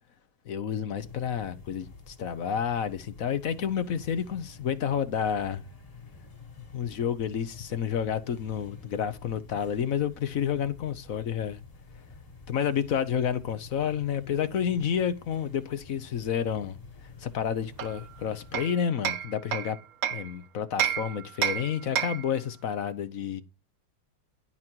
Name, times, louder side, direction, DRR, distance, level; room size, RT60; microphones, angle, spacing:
voice 1, 0.5-5.6 6.6-11.6 12.5-16.8 17.2-19.8 20.1-23.4, left 8 dB, 55° left, 1.2 m, -30 dB
sound 1, 1.0-18.7, left 4 dB, 20° left, 1.4 m, -49 dB
Hammer, 17.8-20.3 20.8-22.4, right 9 dB, 60° right, 1.0 m, -31 dB
11.0 x 8.7 x 4.5 m
omnidirectional pair, 1.9 m